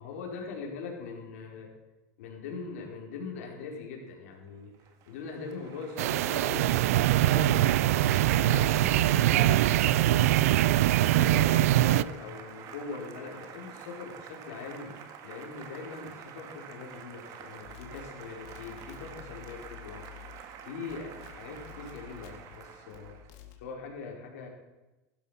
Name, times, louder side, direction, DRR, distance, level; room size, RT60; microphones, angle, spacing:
voice 1, 0.0-1.7 2.2-4.7 5.1-6.7 7.3-10.3 10.6-10.8 11.1-14.9 15.2-20.0 20.6-23.2 23.6-24.5, left 4 dB, 80° left, 0 dB, 4.8 m, -41 dB
Applause, 4.5-23.4, right 8 dB, 45° right, 2.0 m, -47 dB
sound 1, 6.0-12.0, right 14 dB, 85° right, 0.5 m, -23 dB
sound 2, 17.6-20.6 20.9-22.6 22.9-23.6, left 12 dB, 55° left, 2.6 m, -50 dB
15.5 x 12.5 x 5.9 m, 1.1 s
supercardioid pair, 130°, 8 cm